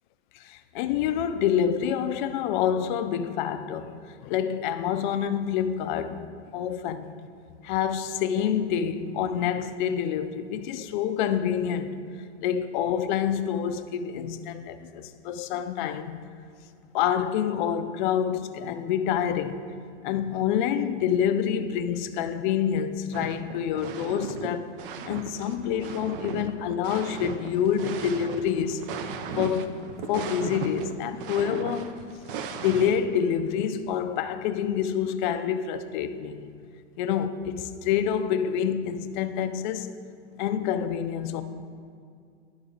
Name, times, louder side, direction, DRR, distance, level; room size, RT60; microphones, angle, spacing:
voice 1, 0.3-3.9 4.2-6.3 6.5-7.2 7.6-12.0 12.4-16.3 16.9-19.6 20.0-24.7 25.0-28.9 29.3-29.7 30.1-31.9 32.5-36.4 37.0-39.9 40.4-41.4, left 8 dB, 45° left, 0.5 m, -27 dB
sound 1, 23.1-24.5 24.8-33.1, right 6 dB, 50° right, 0.6 m, -37 dB
10.5 x 3.9 x 3.9 m
hypercardioid pair, 125°, 36 cm